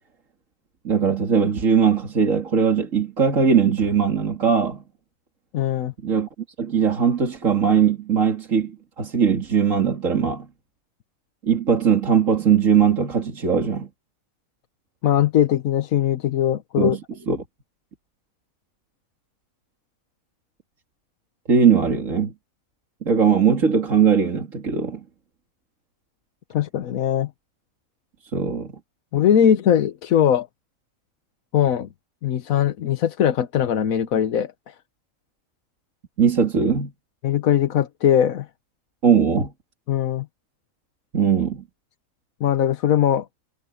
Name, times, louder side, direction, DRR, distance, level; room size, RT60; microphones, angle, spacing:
voice 1, 0.8-4.8 6.0-6.3 6.6-10.5 11.4-13.9 16.8-17.0 17.3-17.4 21.5-22.3 23.0-25.0 28.3-28.8 36.2-36.9 39.0-39.5 41.1-41.6, right 7 dB, 70° right, 2.7 m, -20 dB
voice 2, 5.5-5.9 15.0-17.0 26.5-27.3 29.1-30.5 31.5-31.9 32.2-34.7 37.2-38.5 39.9-40.3 42.4-43.3, left 9 dB, 90° left, 1.4 m, -20 dB
omnidirectional pair, 1.4 m